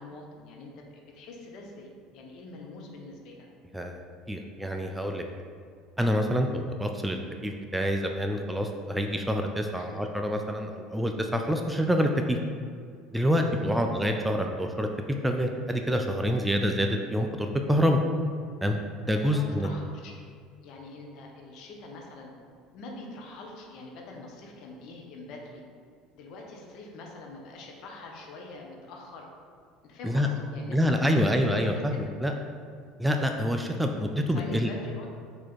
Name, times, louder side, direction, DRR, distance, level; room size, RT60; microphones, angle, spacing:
voice 1, 0.0-3.5 9.8-10.0 13.5-13.9 19.1-20.1 20.6-22.3 22.7-25.6 26.1-29.3 29.8-31.4 34.3-35.1, left 2 dB, 55° left, 0 dB, 0.7 m, -44 dB
voice 2, 4.3-5.2 6.0-12.4 13.1-14.9 15.2-18.0 18.6-18.8 19.0-19.7 30.0-30.3 30.7-32.3 33.0-34.7, equal, 5° right, 4 dB, 0.3 m, -27 dB
4.2 x 2.8 x 4.2 m, 2.1 s
figure-of-eight pair, 65°, 0 cm